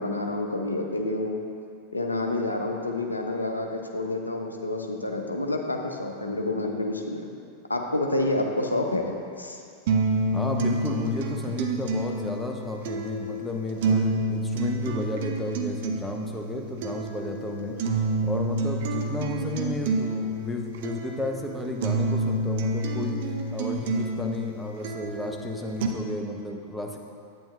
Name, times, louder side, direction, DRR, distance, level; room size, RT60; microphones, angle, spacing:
voice 1, 0.0-1.4 1.9-7.3 7.7-9.6, left 2 dB, 80° left, 2 dB, 0.6 m, -28 dB
sound 1, 9.9-25.9, right 2 dB, 55° right, 0.6 m, -28 dB
voice 2, 10.3-17.7 18.2-27.0, left 2 dB, 5° left, 1 dB, 0.8 m, -33 dB
8.9 x 8.6 x 2.4 m, 2.4 s
figure-of-eight pair, 90°, 0 cm